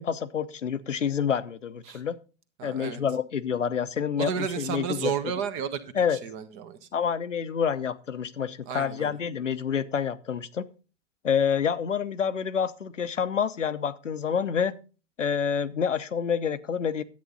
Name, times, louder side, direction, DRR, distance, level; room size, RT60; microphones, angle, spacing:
voice 1, 0.0-2.2 2.6-5.1 5.9-6.2 6.9-10.7 11.2-14.8 15.2-17.0, left 7 dB, 85° left, 12 dB, 0.8 m, -28 dB
voice 2, 2.6-3.0 4.2-6.9 8.7-9.2, right 7 dB, 35° right, 9 dB, 1.4 m, -32 dB
10.5 x 8.7 x 4.0 m, 0.35 s
figure-of-eight pair, 110°, 36 cm